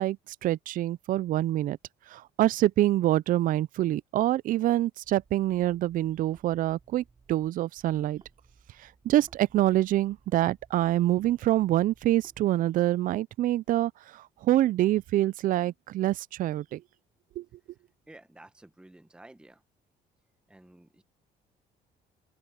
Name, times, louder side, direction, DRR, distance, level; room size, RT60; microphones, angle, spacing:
voice 1, 0.0-1.8 2.1-8.2 8.8-16.8 17.4-17.5, right 14 dB, 55° right, 0.4 m, -26 dB
sound 1, 5.0-7.5 7.8-12.4, right 4 dB, 25° right, 4.7 m, -61 dB
voice 2, 18.1-19.6 20.5-21.0, right 1 dB, 5° right, 1.1 m, -52 dB
open air
cardioid pair, 110°, 17 cm